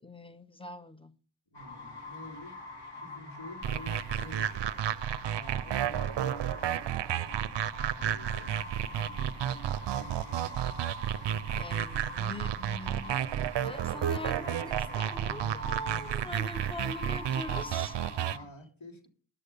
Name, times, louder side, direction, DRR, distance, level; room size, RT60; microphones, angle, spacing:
voice 1, 0.0-1.1 11.5-13.2 13.6-18.0, left 1 dB, 10° left, 1.0 m, -42 dB
voice 2, 1.5-2.6 3.0-4.7 5.3-6.8 7.9-8.5 9.8-10.4 11.2-11.9 13.6-13.7 18.1-19.1, left 1 dB, 75° left, 2.9 m, -49 dB
sound 1, 1.5-18.5, left 2 dB, 60° left, 3.2 m, -44 dB
sound 2, 3.6-18.4, right 10 dB, 65° right, 0.5 m, -32 dB
10.0 x 6.5 x 6.7 m
cardioid pair, 50°, 46 cm